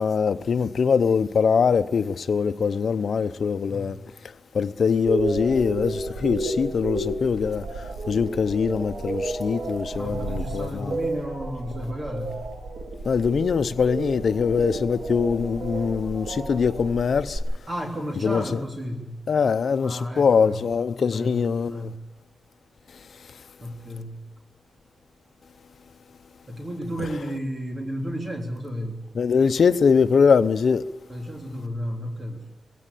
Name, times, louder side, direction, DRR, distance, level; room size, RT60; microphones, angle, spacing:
voice 1, 0.0-4.0 4.5-11.0 13.0-17.4 18.2-18.4 19.3-21.9 29.1-30.9, left 6 dB, 70° left, 0.8 m, -22 dB
sound 1, 5.1-17.4, right 2 dB, 85° right, 4.5 m, -32 dB
voice 2, 10.0-12.4 17.7-19.2 19.8-20.6 21.1-21.4 21.7-22.0 23.6-24.2 26.5-29.0 31.1-32.5, equal, 30° right, 3.5 m, -32 dB
22.0 x 17.0 x 8.5 m
wide cardioid pair, 110°, 0 cm